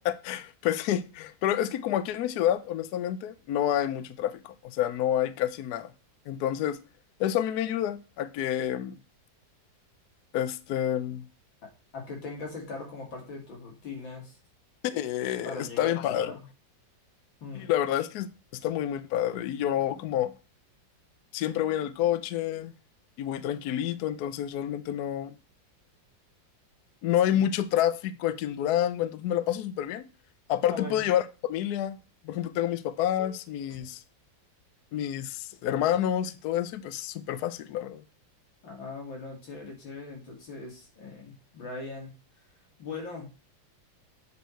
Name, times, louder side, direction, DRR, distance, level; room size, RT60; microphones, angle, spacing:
voice 1, 0.0-5.9 6.3-6.8 7.2-9.0 10.3-11.2 14.8-16.3 17.5-20.3 21.3-22.7 23.2-25.3 27.0-30.0 30.5-32.0 32.2-34.0 34.9-38.0, left 11 dB, 70° left, 1.0 m, -28 dB
voice 2, 11.9-14.4 15.4-16.4 17.4-17.7 27.3-27.5 30.7-31.0 38.6-42.1 42.8-43.3, left 3 dB, 85° left, 3.2 m, -40 dB
8.2 x 4.5 x 4.5 m
omnidirectional pair, 2.0 m